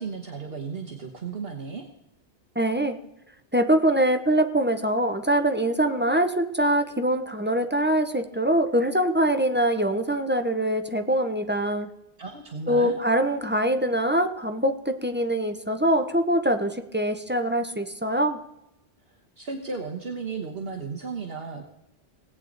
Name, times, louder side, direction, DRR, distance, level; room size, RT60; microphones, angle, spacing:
voice 1, 0.0-1.8 12.2-13.0 19.4-21.7, right 5 dB, 55° right, 3 dB, 1.3 m, -34 dB
voice 2, 2.6-3.0 3.5-11.9 12.7-18.4, right 1 dB, 10° right, 7 dB, 0.6 m, -23 dB
18.5 x 8.5 x 3.9 m, 0.88 s
omnidirectional pair, 1.2 m